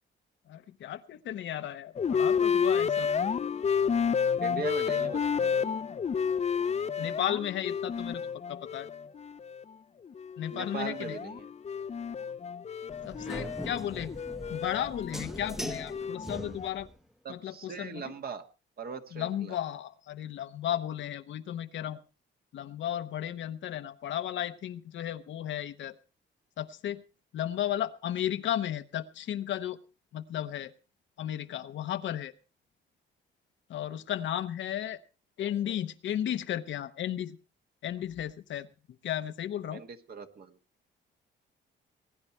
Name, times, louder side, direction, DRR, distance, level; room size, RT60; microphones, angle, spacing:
voice 1, 0.5-3.1 4.5-4.7 7.0-8.9 10.4-11.2 13.0-14.1 14.5-16.9 17.3-18.0 19.1-22.0 22.5-26.0 26.6-27.0 27.3-29.8 30.1-30.7 31.2-32.3 33.7-35.0 35.4-37.4 37.8-38.7 39.0-39.8, left 11 dB, 70° left, 10 dB, 0.9 m, -34 dB
sound 1, 1.9-9.6 10.1-16.7, left 6 dB, 35° left, 0.6 m, -31 dB
voice 2, 4.4-5.8 10.5-11.5 13.3-13.5 17.2-18.4 18.8-19.6 39.7-40.6, right 6 dB, 50° right, 7 dB, 1.6 m, -40 dB
sound 2, 12.9-17.0, equal, ahead, 0.9 m, -41 dB
20.5 x 9.7 x 4.4 m, 0.33 s
cardioid pair, 90°, 20 cm